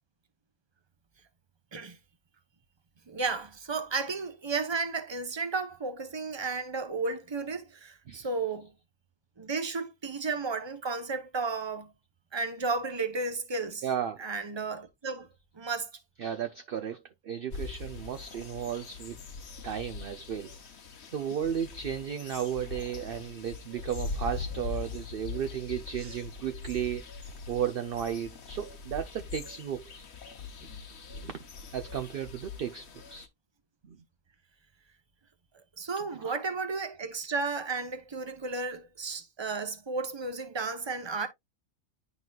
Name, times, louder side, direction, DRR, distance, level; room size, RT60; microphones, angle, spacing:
voice 1, 3.1-8.7 9.4-11.9 12.3-13.9 14.2-15.3 15.5-16.0 26.0-26.2 35.8-41.3, right 4 dB, 25° right, 0.8 m, -33 dB
voice 2, 13.8-14.2 16.2-19.2 19.6-20.5 21.1-27.0 27.5-30.0 31.1-31.4 31.7-33.3 33.8-34.0 36.2-36.3, right 9 dB, 55° right, 0.7 m, -34 dB
sound 1, 17.5-33.3, left 4 dB, 55° left, 1.2 m, -42 dB
10.5 x 4.0 x 2.4 m
omnidirectional pair, 1.4 m